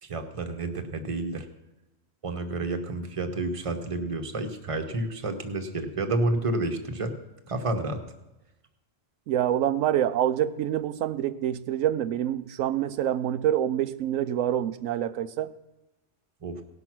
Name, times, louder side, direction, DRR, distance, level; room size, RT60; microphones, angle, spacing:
voice 1, 0.0-1.5 2.2-7.1 7.5-8.0 16.4-16.6, right 2 dB, 30° right, 4 dB, 1.0 m, -30 dB
voice 2, 9.3-15.5, right 11 dB, 85° right, 12 dB, 1.0 m, -26 dB
17.5 x 6.0 x 6.0 m, 1.0 s
omnidirectional pair, 1.3 m